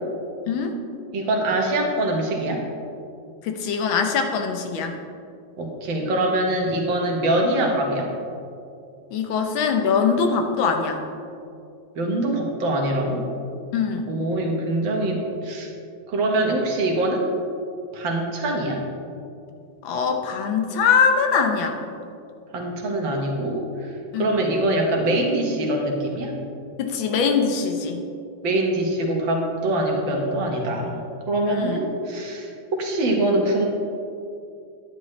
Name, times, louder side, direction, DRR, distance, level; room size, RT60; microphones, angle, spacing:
voice 1, 1.1-2.6 5.6-8.1 12.0-13.3 14.1-15.7 16.1-17.3 17.9-18.8 22.5-23.9 24.2-26.3 28.4-31.0 31.3-33.7, right 1 dB, 75° right, 0 dB, 2.1 m, -23 dB
voice 2, 3.4-5.0 9.1-11.0 13.7-14.1 19.8-21.8 24.1-24.2 26.8-28.0 31.5-31.8, left 6 dB, 85° left, 5 dB, 1.7 m, -22 dB
10.5 x 9.9 x 3.2 m, 2.5 s
omnidirectional pair, 2.1 m